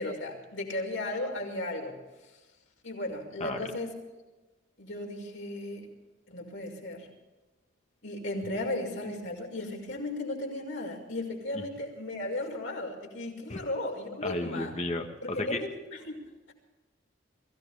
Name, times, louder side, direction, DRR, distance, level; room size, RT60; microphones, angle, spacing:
voice 1, 0.0-2.0 2.8-4.0 4.8-5.9 6.3-7.1 8.0-14.7 15.2-16.5, left 1 dB, 90° left, 0 dB, 5.7 m, -35 dB
voice 2, 14.2-15.6, left 2 dB, 35° left, 5 dB, 1.4 m, -33 dB
24.0 x 16.5 x 3.5 m, 1.1 s
head